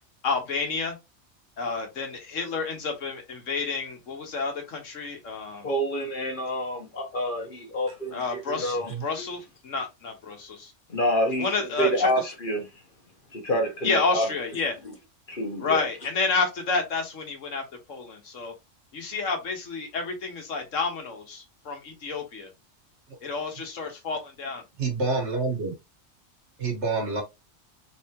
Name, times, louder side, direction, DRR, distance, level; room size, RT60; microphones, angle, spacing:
voice 1, 0.2-1.0 1.6-5.7 8.1-10.7 11.4-12.3 13.8-14.8 15.6-18.5 18.9-22.5 23.2-24.6, left 4 dB, 85° left, 1.5 m, -30 dB
voice 2, 5.6-8.9 10.9-11.5 11.8-12.6 13.3-14.3 15.3-15.8, equal, 45° left, 1.3 m, -27 dB
voice 3, 24.8-25.7 26.6-27.2, right 3 dB, 65° right, 1.6 m, -27 dB
4.1 x 3.6 x 2.9 m
omnidirectional pair, 1.3 m